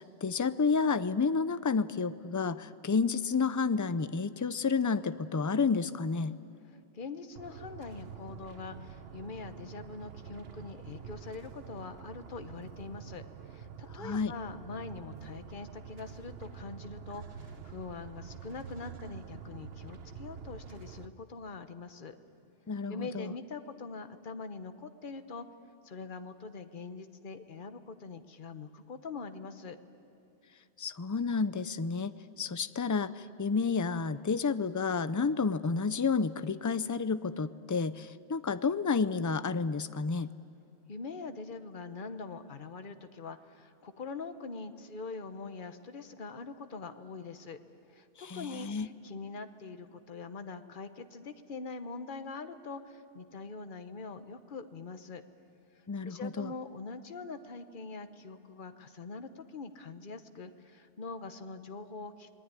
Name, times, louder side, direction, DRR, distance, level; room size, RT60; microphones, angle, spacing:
voice 1, 0.0-6.3 14.0-14.3 22.7-23.3 30.8-40.3 48.2-48.9 55.9-56.5, left 5 dB, 30° left, 13 dB, 0.3 m, -30 dB
voice 2, 6.9-22.2 22.9-25.5 25.8-29.8 40.9-47.6 47.9-55.2 56.0-62.3, left 4 dB, 50° left, 9 dB, 1.2 m, -43 dB
sound 1, 7.4-21.1, right 7 dB, 65° right, 1.1 m, -47 dB
27.5 x 20.0 x 9.7 m, 2.8 s
omnidirectional pair, 1.1 m